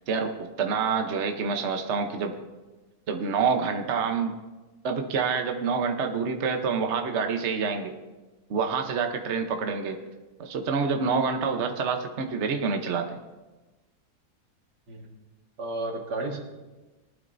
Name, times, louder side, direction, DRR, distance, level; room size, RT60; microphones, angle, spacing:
voice 1, 0.6-2.3 3.1-4.3 4.8-7.9 8.5-10.0 10.4-13.2, right 5 dB, 50° right, 5 dB, 1.1 m, -27 dB
voice 2, 15.6-16.4, right 2 dB, 85° right, 1 dB, 2.3 m, -32 dB
20.0 x 11.5 x 2.7 m, 1.1 s
omnidirectional pair, 1.7 m